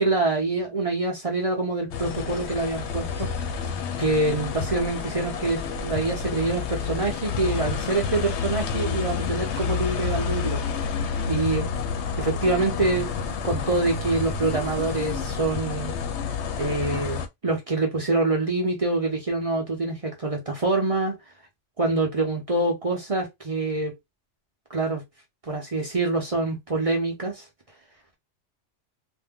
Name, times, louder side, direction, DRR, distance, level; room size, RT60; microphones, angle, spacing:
voice 1, 0.0-3.3 4.0-10.9 11.3-11.7 12.2-16.0 16.6-21.1 21.8-23.9 24.7-25.0 25.5-27.4, right 3 dB, 35° right, 0.7 m, -26 dB
sound 1, 1.9-17.3, left 6 dB, 70° left, 0.8 m, -29 dB
2.7 x 2.1 x 3.6 m
omnidirectional pair, 1.2 m